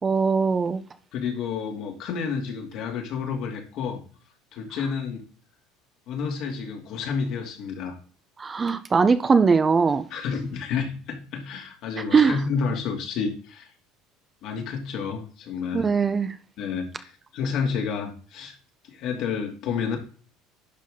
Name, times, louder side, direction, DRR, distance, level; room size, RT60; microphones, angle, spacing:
voice 1, 0.0-0.8 8.4-10.0 12.1-12.4 15.7-16.4, right 5 dB, 25° right, 0.9 m, -20 dB
voice 2, 1.1-4.0 4.5-5.2 6.1-8.0 10.1-13.7 14.4-15.9 16.6-18.5 18.8-20.0, left 6 dB, 65° left, 2.8 m, -30 dB
11.5 x 4.8 x 3.8 m
supercardioid pair, 100°, 0 cm